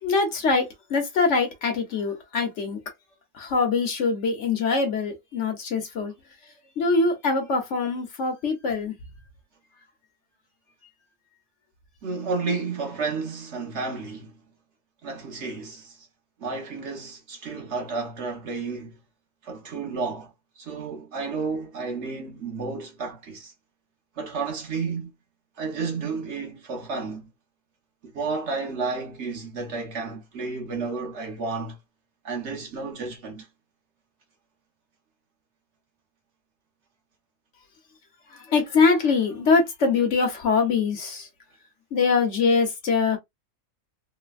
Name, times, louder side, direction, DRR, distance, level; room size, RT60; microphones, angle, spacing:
voice 1, 0.0-2.8 3.3-6.1 6.8-8.9 38.3-41.3 41.9-43.2, left 4 dB, 60° left, 1.1 m, -23 dB
voice 2, 12.0-14.4 15.0-16.1 16.4-19.0 19.4-20.3 20.6-23.5 24.2-25.1 25.6-27.3 28.1-31.8 32.2-33.5, right 4 dB, 55° right, 1.1 m, -31 dB
3.2 x 2.1 x 2.4 m
omnidirectional pair, 1.5 m